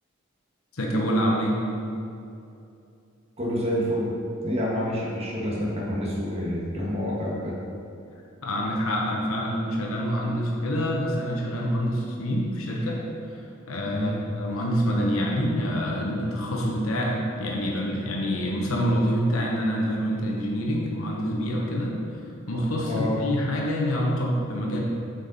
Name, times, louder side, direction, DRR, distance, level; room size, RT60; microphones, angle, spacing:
voice 1, 0.7-1.6 8.4-13.0 13.3-13.4 13.7-14.1 14.4-22.0 22.5-24.8, equal, 85° left, -2 dB, 1.0 m, -26 dB
voice 2, 3.4-4.1 4.4-7.6 13.9-14.2 22.9-23.2, equal, 30° right, -4 dB, 1.5 m, -28 dB
7.8 x 5.2 x 4.1 m, 2.6 s
head